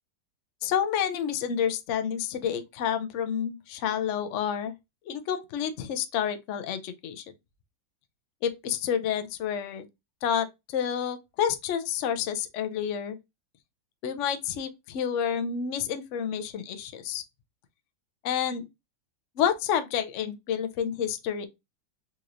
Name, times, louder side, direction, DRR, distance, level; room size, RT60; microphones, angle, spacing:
voice 1, 0.6-4.7 5.1-7.2 8.4-9.8 10.2-13.2 14.0-17.2 18.2-18.6 19.4-21.5, left 8 dB, 80° left, 0.6 m, -29 dB
4.2 x 3.0 x 2.5 m
omnidirectional pair, 2.0 m